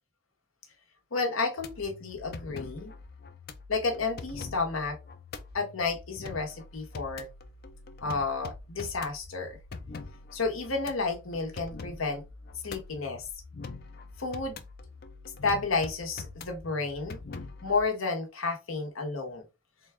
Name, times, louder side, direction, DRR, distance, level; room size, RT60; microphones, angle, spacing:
voice 1, 1.1-2.9 3.7-5.0 5.5-7.3 8.0-9.6 10.3-12.2 12.6-13.3 14.2-14.6 15.4-17.2 17.6-19.4, left 4 dB, 85° left, 1.1 m, -31 dB
sound 1, 1.6-17.9, left 3 dB, 45° left, 0.4 m, -44 dB
3.8 x 2.3 x 3.4 m
head